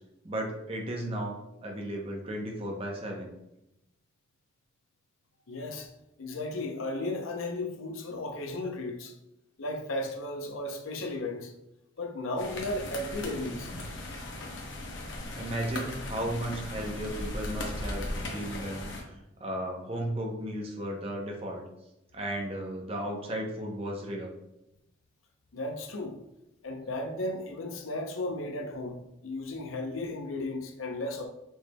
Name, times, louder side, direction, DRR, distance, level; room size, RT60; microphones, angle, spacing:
voice 1, 0.2-3.3 15.3-21.6 22.1-24.3, right 1 dB, 30° right, 0 dB, 0.8 m, -35 dB
voice 2, 5.5-5.9 6.2-9.2 9.6-11.5 12.0-13.7 14.1-14.3 25.5-26.2 26.6-31.3, left 2 dB, 85° left, 3 dB, 0.7 m, -35 dB
sound 1, 12.4-19.0, left 1 dB, 65° left, 0.9 m, -37 dB
6.3 x 3.3 x 2.2 m, 0.87 s
head